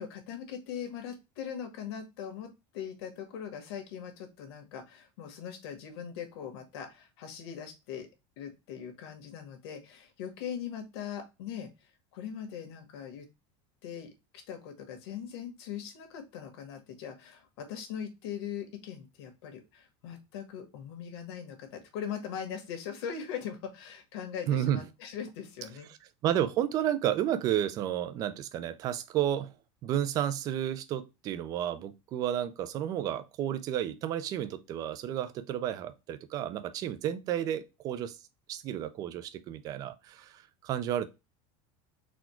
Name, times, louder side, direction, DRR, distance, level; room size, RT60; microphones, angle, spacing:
voice 1, 0.0-8.1 8.4-11.7 12.1-13.3 13.8-14.1 14.5-25.9, left 8 dB, 75° left, 1.4 m, -40 dB
voice 2, 24.5-24.8 26.2-29.5 29.8-38.2 38.5-41.1, right 11 dB, 25° right, 0.3 m, -31 dB
4.2 x 2.3 x 4.3 m
cardioid pair, 170°, 14 cm